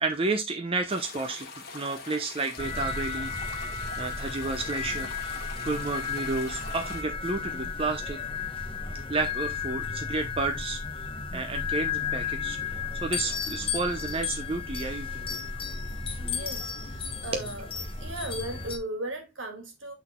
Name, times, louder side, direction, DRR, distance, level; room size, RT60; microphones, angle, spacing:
voice 1, 0.0-5.3 5.6-8.2 9.1-15.4 17.3-17.4, right 3 dB, 30° right, 0.7 m, -31 dB
sound 1, 0.9-7.0, left 3 dB, 55° left, 1.5 m, -43 dB
sound 2, 2.6-18.8, left 5 dB, 30° left, 1.1 m, -34 dB
voice 2, 16.2-17.7 18.0-19.9, right 1 dB, 75° right, 2.1 m, -37 dB
8.0 x 4.0 x 3.6 m
head